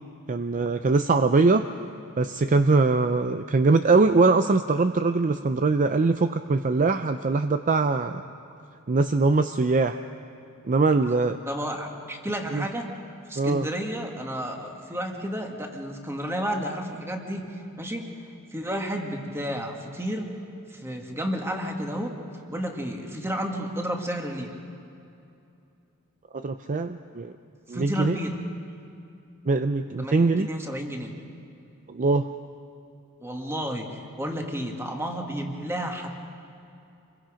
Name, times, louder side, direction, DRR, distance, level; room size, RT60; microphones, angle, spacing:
voice 1, 0.3-1.6 2.2-8.2 8.9-10.0 10.7-11.4 12.5-12.6 13.4-13.7 26.3-27.3 27.7-28.2 29.5-30.5 31.9-32.3, right 3 dB, 35° right, 8 dB, 0.5 m, -22 dB
voice 2, 11.5-12.9 13.3-18.2 18.5-20.3 20.7-22.1 22.5-24.5 27.7-28.4 30.0-31.1 33.2-36.1, equal, 10° right, 2 dB, 2.0 m, -31 dB
27.5 x 22.5 x 5.1 m, 2.6 s
head